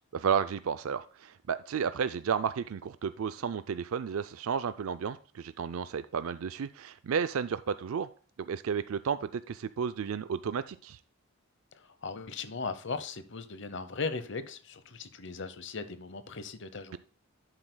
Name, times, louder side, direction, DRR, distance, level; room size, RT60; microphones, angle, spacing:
voice 1, 0.1-8.1 8.4-11.0, right 7 dB, 75° right, 0.4 m, -32 dB
voice 2, 11.7-17.0, left 4 dB, 55° left, 0.8 m, -38 dB
11.5 x 7.9 x 2.2 m
head